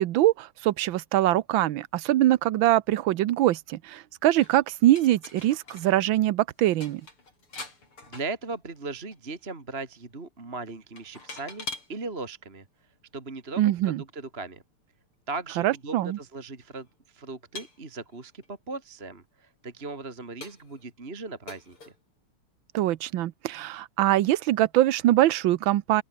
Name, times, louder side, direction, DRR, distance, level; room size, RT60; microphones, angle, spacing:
voice 1, 0.0-7.0 13.6-14.0 15.6-16.2 22.7-26.0, right 14 dB, 70° right, 1.5 m, -23 dB
sound 1, 4.4-5.9 6.2-6.3 6.6-8.8 9.1-9.4 11.0-11.9 12.8-12.9 15.4-15.5 15.7-15.8 16.6-16.8 17.5-18.5 19.1-19.2 19.8-19.9 20.4-20.9 21.5-22.0, left 3 dB, 75° left, 7.9 m, -43 dB
voice 2, 8.1-12.6 13.1-14.6 15.3-21.9, right 3 dB, 25° right, 2.8 m, -38 dB
open air
omnidirectional pair, 2.4 m